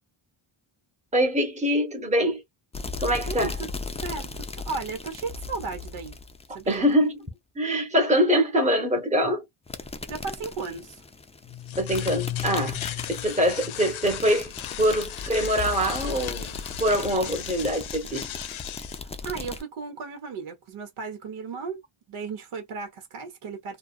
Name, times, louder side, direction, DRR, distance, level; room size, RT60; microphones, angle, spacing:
voice 1, 1.1-2.4 3.0-3.6 6.7-7.2 7.5-9.4 11.8-12.8 13.1-16.5 16.8-18.4, equal, 15° right, 1.1 m, -24 dB
sound 1, 2.7-6.9 9.7-19.6, left 3 dB, 15° left, 0.4 m, -37 dB
voice 2, 4.0-6.2 6.5-6.9 10.1-11.0 19.2-21.8 22.1-23.8, right 4 dB, 80° right, 1.1 m, -35 dB
sound 2, 11.4-19.0, left 12 dB, 70° left, 0.6 m, -36 dB
2.4 x 2.3 x 2.4 m
cardioid pair, 105°, 49 cm